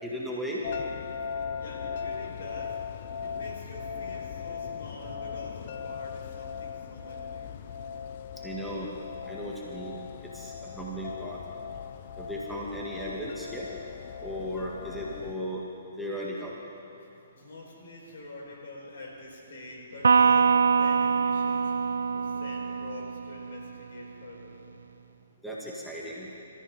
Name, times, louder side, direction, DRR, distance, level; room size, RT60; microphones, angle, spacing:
voice 1, 0.0-0.6 8.4-8.9 9.3-10.0 10.3-11.4 12.2-13.7 14.2-15.6 16.0-16.6 25.4-26.3, equal, ahead, -6 dB, 2.3 m, -36 dB
sound 1, 0.6-15.3, left 6 dB, 50° left, 0.8 m, -38 dB
voice 2, 1.6-7.6 17.3-24.6, left 2 dB, 65° left, -2 dB, 5.1 m, -45 dB
Electric guitar, 20.0-23.6, right 5 dB, 80° right, 0.5 m, -24 dB
25.5 x 14.5 x 3.8 m, 2.6 s
hypercardioid pair, 140°, 0 cm